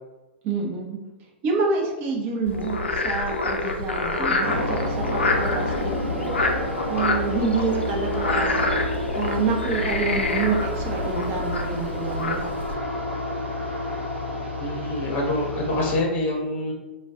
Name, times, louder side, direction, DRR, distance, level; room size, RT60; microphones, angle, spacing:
voice 1, 0.4-1.0 1.4-6.3 6.9-8.7 9.2-12.4, right 4 dB, 35° right, -1 dB, 0.7 m, -27 dB
Frog, 2.5-12.7, left 2 dB, 80° left, 0.4 m, -27 dB
sound 1, 4.4-16.0, left 1 dB, 85° right, 0.8 m, -30 dB
voice 2, 14.6-16.7, left 1 dB, 30° left, 0 dB, 0.8 m, -26 dB
2.4 x 2.2 x 3.5 m, 1.1 s
figure-of-eight pair, 100°, 6 cm